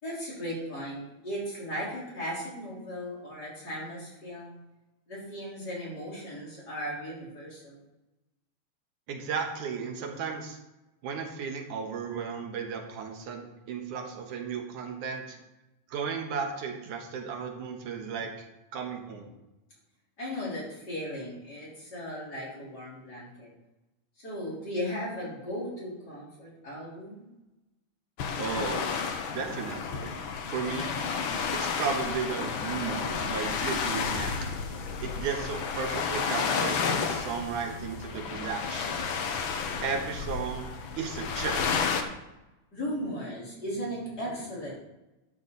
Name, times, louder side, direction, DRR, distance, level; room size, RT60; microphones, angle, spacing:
voice 1, 0.0-4.6 5.1-7.8 20.2-23.5 24.2-27.3 42.7-44.7, equal, 30° left, -6 dB, 4.5 m, -37 dB
voice 2, 9.1-10.6 11.0-15.4 15.9-18.3 18.7-19.3 28.4-29.0 29.3-30.2 30.5-30.9 31.5-34.5 35.0-39.1 39.8-41.7, right 6 dB, 80° right, 2 dB, 2.8 m, -34 dB
sound 1, 28.2-42.0, left 5 dB, 65° left, 1.3 m, -31 dB
13.0 x 9.1 x 4.0 m, 0.98 s
omnidirectional pair, 3.5 m